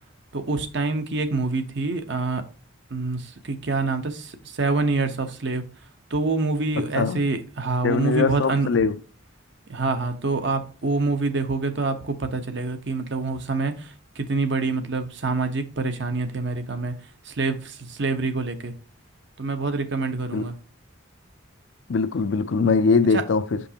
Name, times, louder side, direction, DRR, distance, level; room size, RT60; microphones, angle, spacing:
voice 1, 0.3-2.4 2.9-5.6 6.1-8.7 9.7-16.9 17.2-18.7 19.4-20.5 23.1-23.2, right 3 dB, 60° right, 0.9 m, -26 dB
voice 2, 7.0-7.3 7.8-8.9 20.3-20.5 21.9-23.6, left 4 dB, 70° left, 0.5 m, -21 dB
6.5 x 5.3 x 2.8 m
head